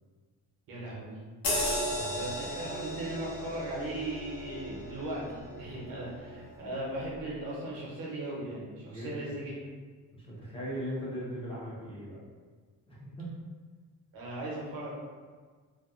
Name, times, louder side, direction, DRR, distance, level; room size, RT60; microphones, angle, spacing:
voice 1, 0.7-1.2 2.2-9.5 14.1-14.9, right 1 dB, 80° right, -4 dB, 0.9 m, -38 dB
sound 1, 1.4-6.4 6.8-7.0, left 1 dB, 80° left, 0.8 m, -35 dB
voice 2, 1.9-2.3 8.9-9.3 10.1-12.2 12.9-13.3, equal, 15° left, -8 dB, 0.6 m, -39 dB
2.5 x 2.2 x 2.4 m, 1.5 s
cardioid pair, 170°, 33 cm